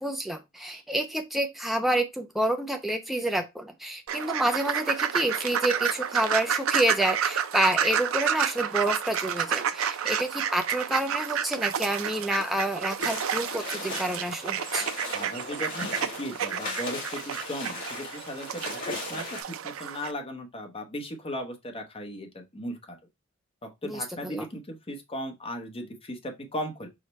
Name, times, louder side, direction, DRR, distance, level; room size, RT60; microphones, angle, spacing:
voice 1, 0.0-14.9 23.8-24.5, right 1 dB, ahead, 0.4 m, -28 dB
sound 1, 4.1-20.1, right 8 dB, 85° right, 0.5 m, -30 dB
sound 2, 13.0-19.4, left 2 dB, 45° left, 1.7 m, -37 dB
voice 2, 15.1-23.0 23.6-26.9, equal, 30° left, 0.8 m, -37 dB
4.9 x 2.1 x 4.1 m
head